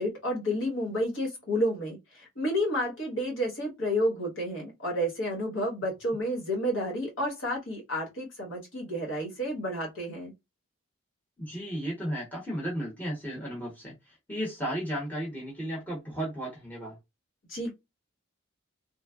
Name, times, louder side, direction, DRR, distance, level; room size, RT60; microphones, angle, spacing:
voice 1, 0.0-10.3 17.5-17.7, equal, 60° left, 1.2 m, -30 dB
voice 2, 11.4-13.9 14.3-17.0, equal, 10° left, 0.8 m, -34 dB
3.2 x 2.1 x 2.2 m
head